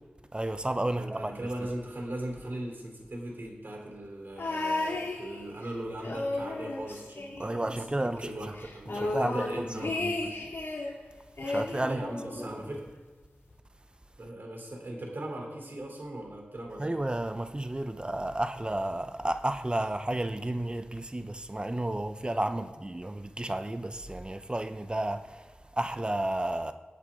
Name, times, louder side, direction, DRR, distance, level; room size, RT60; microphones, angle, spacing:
voice 1, 0.3-1.3 1.6-1.7 7.4-8.3 8.9-10.1 11.4-12.0 12.4-12.7 16.8-26.7, right 1 dB, 25° right, 0.8 m, -32 dB
voice 2, 0.9-10.3 11.7-12.9 14.2-17.0, right 1 dB, 60° right, 3.3 m, -39 dB
sound 1, 4.4-5.7 6.0-7.9 8.2-8.3 8.6-10.9 11.4-12.6 13.5-13.6, left 2 dB, 90° left, 2.1 m, -34 dB
21.5 x 8.4 x 3.7 m
wide cardioid pair, 60°, 4 cm